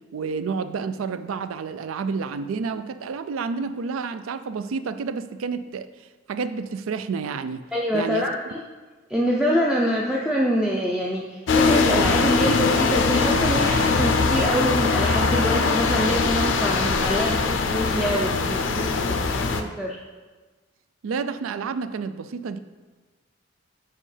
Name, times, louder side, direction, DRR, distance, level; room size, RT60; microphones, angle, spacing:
voice 1, 0.1-5.9 6.3-7.7 7.9-8.3 21.0-22.6, right 5 dB, 85° right, 12 dB, 0.4 m, -29 dB
voice 2, 7.7-8.6 9.1-20.0, equal, 5° right, -4 dB, 0.4 m, -25 dB
sound 1, 11.5-19.6, left 4 dB, 70° left, 0.5 m, -21 dB
7.6 x 5.3 x 3.3 m, 1.3 s
head